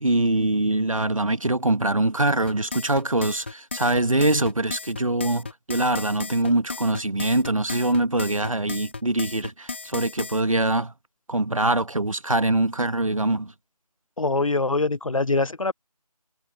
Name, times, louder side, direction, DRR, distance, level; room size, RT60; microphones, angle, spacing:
voice 1, 0.0-10.9 11.3-13.5, right 2 dB, 55° right, 1.6 m, -23 dB
sound 1, 2.5-10.4, left 4 dB, 20° left, 2.8 m, -35 dB
voice 2, 14.2-15.7, left 3 dB, 55° left, 0.4 m, -23 dB
figure-of-eight pair, 170°, 20 cm